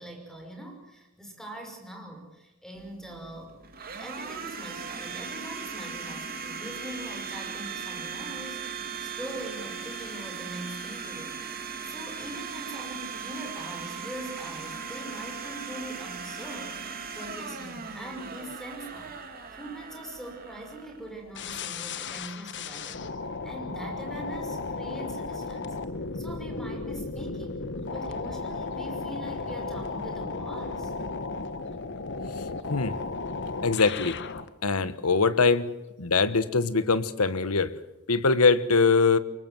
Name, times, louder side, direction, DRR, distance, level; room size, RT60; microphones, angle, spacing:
voice 1, 0.0-3.5 4.0-11.4 11.8-19.1 19.5-25.8 26.1-30.9, right 1 dB, ahead, 3 dB, 5.8 m, -42 dB
Domestic sounds home sounds, 2.8-21.6, right 5 dB, 45° right, 3.2 m, -38 dB
sound 1, 21.3-34.5, left 3 dB, 55° left, 1.4 m, -35 dB
voice 2, 33.6-34.2 34.6-35.7 36.0-37.7 38.1-39.2, left 4 dB, 85° left, 14 dB, 1.3 m, -22 dB
24.0 x 21.5 x 7.8 m, 1.0 s
head